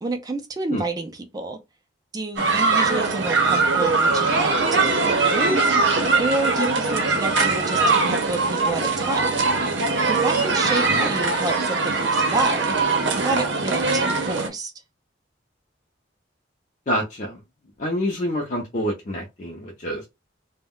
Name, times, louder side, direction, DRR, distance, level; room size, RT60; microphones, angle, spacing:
voice 1, 0.0-1.6 2.1-9.3 10.1-12.8 13.1-14.7, right 3 dB, 20° right, 0.3 m, -29 dB
sound 1, 2.4-14.5, right 3 dB, 70° right, 0.6 m, -21 dB
voice 2, 16.9-17.4 17.8-20.1, equal, 40° left, 0.5 m, -27 dB
2.2 x 2.1 x 3.6 m
head